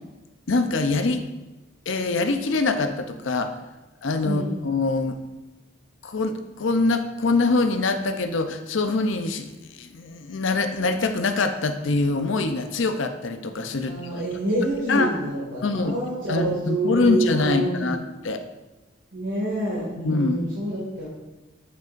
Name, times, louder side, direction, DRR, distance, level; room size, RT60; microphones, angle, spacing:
voice 1, 0.5-1.3 1.9-3.5 4.0-5.2 6.0-9.5 9.8-14.2 14.9-15.2 15.6-16.0 16.3-18.4 20.0-20.4, left 3 dB, 75° left, 8 dB, 0.6 m, -24 dB
voice 2, 13.8-17.9 19.1-21.1, right 1 dB, 70° right, -7 dB, 2.0 m, -27 dB
8.1 x 7.5 x 2.6 m, 1.1 s
head